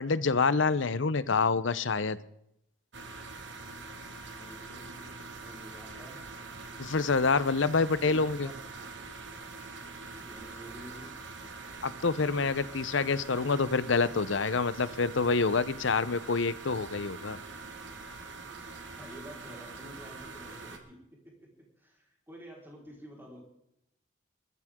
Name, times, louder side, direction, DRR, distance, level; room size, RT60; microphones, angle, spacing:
voice 1, 0.0-2.2 6.8-8.5 11.8-17.4, left 4 dB, 70° left, 16 dB, 0.8 m, -27 dB
sound 1, 2.9-20.8, right 3 dB, 60° right, 2.1 m, -44 dB
voice 2, 4.1-5.1 5.4-6.2 8.0-8.6 10.2-11.2 13.3-13.6 14.1-14.2 18.8-23.4, equal, 10° right, -1 dB, 4.5 m, -50 dB
21.0 x 14.0 x 3.7 m, 0.79 s
head